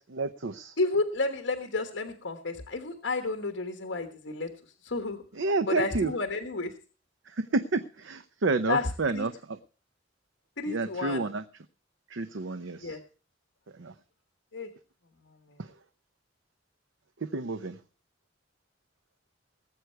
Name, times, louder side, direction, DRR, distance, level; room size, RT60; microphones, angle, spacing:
voice 1, 0.1-0.7 5.3-6.1 7.3-9.6 10.7-11.4 12.1-13.0 13.8-13.9 15.6-15.7 17.2-17.8, right 3 dB, 85° right, 11 dB, 0.7 m, -30 dB
voice 2, 0.8-4.5 4.8-5.2 5.7-6.7 8.7-8.9 9.1-9.3 10.6-11.2 12.8-13.0 14.5-14.7, left 3 dB, 75° left, 5 dB, 1.3 m, -31 dB
19.5 x 8.1 x 4.5 m, 0.38 s
head